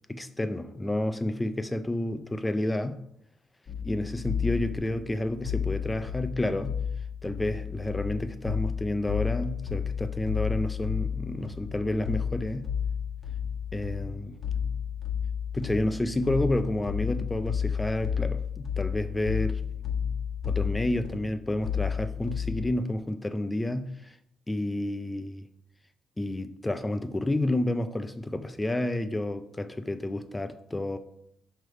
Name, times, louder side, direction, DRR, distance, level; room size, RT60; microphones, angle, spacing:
voice 1, 0.1-3.0 3.8-6.8 7.2-12.7 13.7-14.4 15.5-19.6 20.4-24.2 24.5-25.5 26.2-31.0, left 1 dB, 15° left, 0.5 m, -30 dB
sound 1, 3.7-22.7, left 7 dB, 40° left, 1.2 m, -32 dB
6.0 x 3.4 x 4.7 m
cardioid pair, 90°, 0 cm